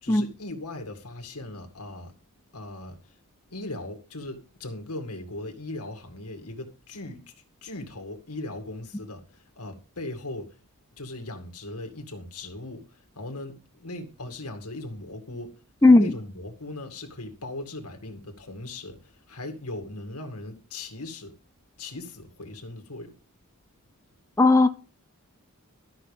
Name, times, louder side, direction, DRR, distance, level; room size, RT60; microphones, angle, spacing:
voice 1, 0.0-2.1 2.5-3.0 3.5-7.3 7.6-10.5 11.0-15.5 15.8-21.3 21.8-23.1, left 2 dB, 90° left, 2.1 m, -38 dB
voice 2, 15.8-16.1 24.4-24.7, left 2 dB, 15° left, 0.7 m, -16 dB
13.0 x 6.1 x 5.3 m
head